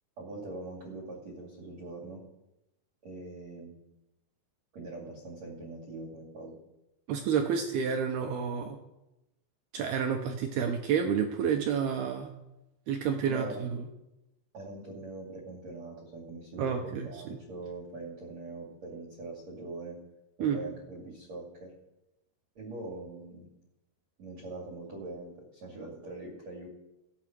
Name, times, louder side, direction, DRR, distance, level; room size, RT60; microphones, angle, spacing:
voice 1, 0.2-2.2 3.0-3.8 4.7-6.6 13.2-13.7 14.5-20.0 20.4-21.7 22.5-23.5 24.2-26.7, right 2 dB, 45° right, -1 dB, 3.0 m, -42 dB
voice 2, 7.1-8.8 9.7-12.3 12.9-13.7 16.6-17.1 20.4-20.6, right 7 dB, 75° right, 3 dB, 2.3 m, -29 dB
16.0 x 8.7 x 6.1 m, 0.95 s
omnidirectional pair, 5.6 m